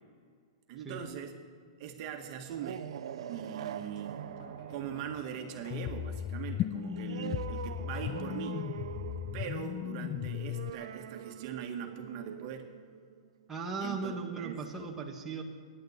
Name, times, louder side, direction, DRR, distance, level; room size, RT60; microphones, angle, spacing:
voice 1, 0.7-1.3 1.8-2.9 3.3-4.2 4.7-8.6 9.3-12.7 13.8-14.6, right 8 dB, 45° right, 3 dB, 1.9 m, -41 dB
sound 1, 2.3-13.6, right 9 dB, 75° right, 0.8 m, -44 dB
sound 2, 3.9-10.7 11.3-11.4, left 3 dB, 70° left, 5.3 m, -56 dB
sound 3, 5.7-10.7, left 12 dB, 30° left, 0.4 m, -36 dB
voice 2, 13.5-15.4, right 4 dB, 15° right, -1 dB, 1.8 m, -37 dB
14.5 x 11.0 x 8.2 m, 2.1 s
hypercardioid pair, 140°, 3 cm